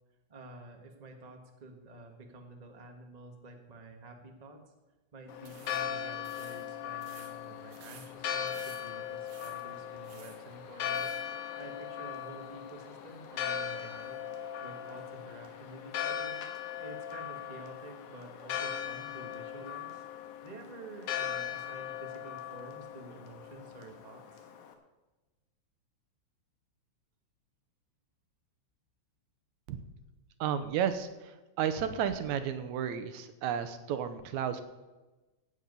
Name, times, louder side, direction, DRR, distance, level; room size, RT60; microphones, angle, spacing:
voice 1, 0.3-4.6 5.1-14.2 14.6-16.4 16.8-20.1 20.4-24.5, right 2 dB, 35° right, 3 dB, 0.6 m, -50 dB
Church bell, 5.3-24.7, left 9 dB, 80° left, 2.5 m, -39 dB
sound 1, 5.4-11.3, right 7 dB, 60° right, 2.4 m, -56 dB
voice 2, 30.4-31.3 31.6-34.6, right 8 dB, 80° right, 11 dB, 2.1 m, -32 dB
16.0 x 8.2 x 5.4 m, 1.1 s
omnidirectional pair, 3.4 m